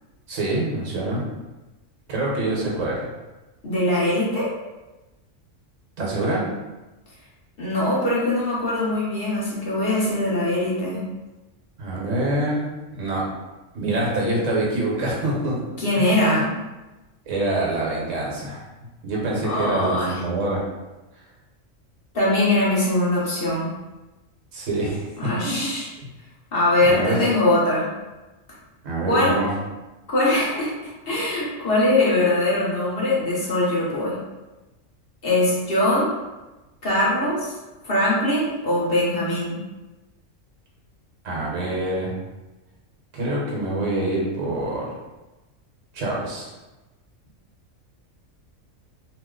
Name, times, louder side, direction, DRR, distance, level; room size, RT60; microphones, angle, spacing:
voice 1, 0.3-1.3 2.1-3.1 6.0-6.5 11.8-12.7 12.9-13.3 13.7-15.6 16.0-16.4 17.3-18.7 19.0-20.6 24.5-25.6 26.8-27.2 28.8-29.5 41.2-42.1 43.1-44.9 45.9-46.5, right 2 dB, 75° right, -3 dB, 1.2 m, -25 dB
voice 2, 3.6-4.5 7.6-11.0 15.8-16.5 19.4-20.2 22.1-23.7 25.2-25.9 26.5-27.8 29.0-29.4 30.1-34.2 35.2-36.1 36.8-37.5 37.8-39.6, left 1 dB, 50° left, -7 dB, 1.0 m, -22 dB
3.0 x 2.0 x 3.6 m, 1.1 s
omnidirectional pair, 1.4 m